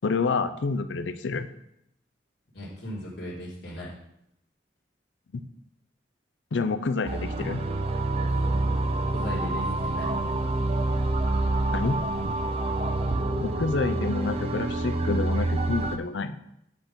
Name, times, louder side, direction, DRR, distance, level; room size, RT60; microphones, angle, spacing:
voice 1, 0.0-1.5 6.5-7.6 11.7-12.0 13.4-16.4, left 4 dB, 80° left, 11 dB, 0.5 m, -28 dB
voice 2, 2.5-3.9 8.9-10.1, left 1 dB, 65° left, -7 dB, 1.7 m, -37 dB
sound 1, 7.1-16.0, right 2 dB, 35° right, 0.5 m, -27 dB
8.1 x 4.4 x 5.1 m, 0.78 s
head